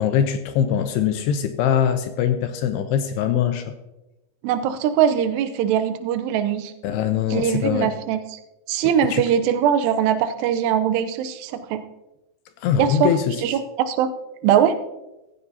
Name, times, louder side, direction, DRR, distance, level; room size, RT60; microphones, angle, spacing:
voice 1, 0.0-3.7 6.8-7.9 8.8-9.2 12.6-13.4, left 9 dB, 80° left, 8 dB, 2.6 m, -22 dB
voice 2, 4.4-6.7 7.3-8.2 8.7-11.8 12.8-13.1 13.4-14.1 14.4-14.8, right 9 dB, 75° right, 9 dB, 2.8 m, -21 dB
15.5 x 15.5 x 2.8 m, 0.99 s
omnidirectional pair, 5.1 m